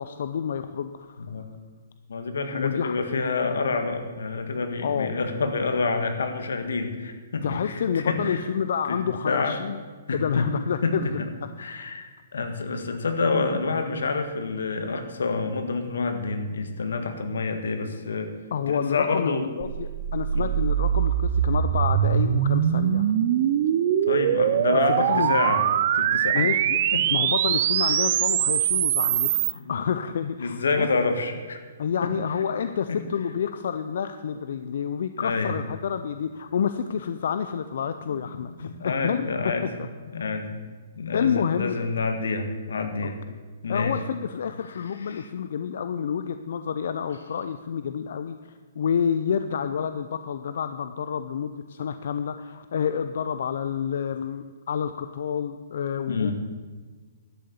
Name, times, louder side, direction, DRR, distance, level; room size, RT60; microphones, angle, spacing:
voice 1, 0.0-1.3 2.5-3.0 4.8-5.2 7.4-9.8 10.1-11.1 18.5-19.3 19.6-23.1 24.7-25.3 26.3-26.8 27.1-30.9 31.8-39.3 41.1-41.8 43.3-43.4 43.7-48.3 48.8-56.3, left 7 dB, 60° left, 10 dB, 0.5 m, -29 dB
voice 2, 2.1-8.4 8.9-9.5 10.1-10.5 10.8-11.3 11.6-18.3 18.7-19.5 20.3-20.5 24.1-25.6 25.9-26.5 26.9-27.1 27.8-27.9 29.6-29.8 30.4-31.6 32.0-32.1 32.9-33.0 35.2-35.5 38.6-39.7 40.1-43.2 43.6-43.9 45.1-45.2 56.1-56.3, left 4 dB, 90° left, 7 dB, 1.7 m, -28 dB
sound 1, 19.6-29.5, right 10 dB, 40° right, 0.6 m, -23 dB
12.0 x 6.7 x 8.1 m, 1.5 s
hypercardioid pair, 160°, 0 cm